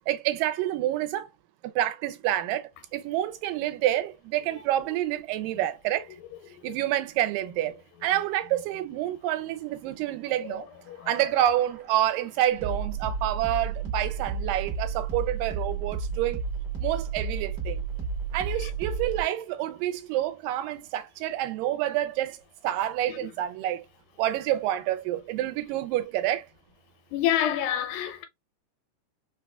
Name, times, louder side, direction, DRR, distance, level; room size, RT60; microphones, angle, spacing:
voice 1, 0.1-1.3 1.6-6.1 6.6-10.7 11.1-16.4 16.8-17.8 18.3-23.8 24.2-26.5, right 13 dB, 85° right, 2.2 m, -28 dB
sound 1, 10.5-19.2, right 5 dB, 50° right, 1.3 m, -32 dB
voice 2, 10.9-11.2 18.6-18.7 23.1-23.3 27.1-28.2, left 11 dB, 85° left, 2.4 m, -29 dB
5.2 x 2.4 x 2.2 m
omnidirectional pair, 3.9 m